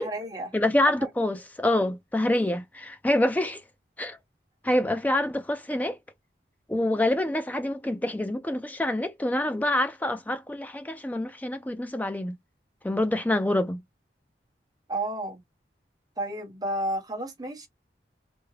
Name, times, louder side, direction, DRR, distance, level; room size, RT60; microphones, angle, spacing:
voice 1, 0.0-0.5 1.0-1.1 14.9-15.4 16.2-17.7, right 1 dB, 20° right, 1.1 m, -31 dB
voice 2, 0.5-3.6 4.0-4.2 4.6-6.0 6.7-12.3 12.8-13.8, left 1 dB, 10° left, 0.3 m, -26 dB
3.4 x 2.1 x 3.2 m
head